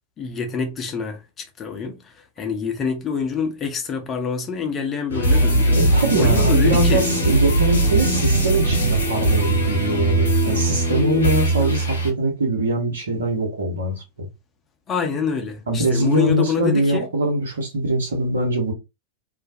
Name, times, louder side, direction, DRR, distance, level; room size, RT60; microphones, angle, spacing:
voice 1, 0.2-5.8 6.1-7.0 14.9-17.1, left 5 dB, 25° left, 0.6 m, -26 dB
sound 1, 5.1-12.1, right 1 dB, 75° left, 0.7 m, -19 dB
voice 2, 5.7-14.3 15.7-18.7, right 1 dB, 70° right, 1.0 m, -22 dB
2.4 x 2.1 x 2.7 m
figure-of-eight pair, 90°, 0 cm